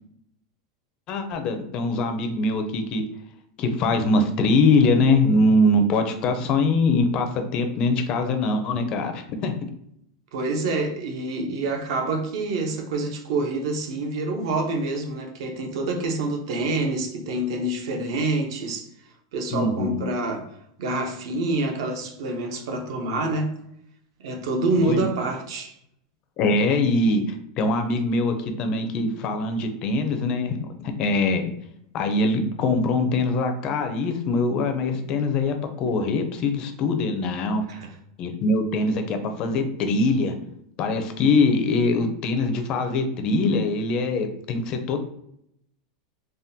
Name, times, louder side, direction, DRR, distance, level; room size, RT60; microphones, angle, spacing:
voice 1, 1.1-3.0 3.6-9.5 19.5-20.0 24.8-25.0 26.4-30.6 31.0-31.4 31.9-37.6 38.2-40.4 40.8-45.0, left 2 dB, 30° left, 0.4 m, -23 dB
voice 2, 10.3-18.9 19.3-20.4 20.8-23.5 24.2-25.7 37.7-37.9, right 2 dB, 65° right, 0.6 m, -27 dB
3.5 x 2.1 x 2.7 m
supercardioid pair, 165°, 3 cm